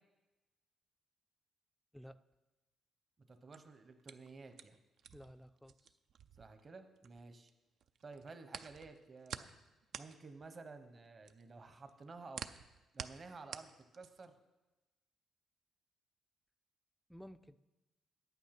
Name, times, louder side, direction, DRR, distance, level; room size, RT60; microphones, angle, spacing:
voice 1, 3.3-4.8 6.4-7.5 8.0-9.5 9.9-12.5 12.9-14.3, right 3 dB, 35° right, 8 dB, 1.0 m, -53 dB
sound 1, 3.3-7.5 7.8-14.4, right 8 dB, 70° right, 0.4 m, -50 dB
voice 2, 5.1-6.0 17.1-17.6, equal, 5° left, 12 dB, 0.4 m, -54 dB
9.3 x 8.5 x 5.9 m, 1.1 s
cardioid pair, 90°, 0 cm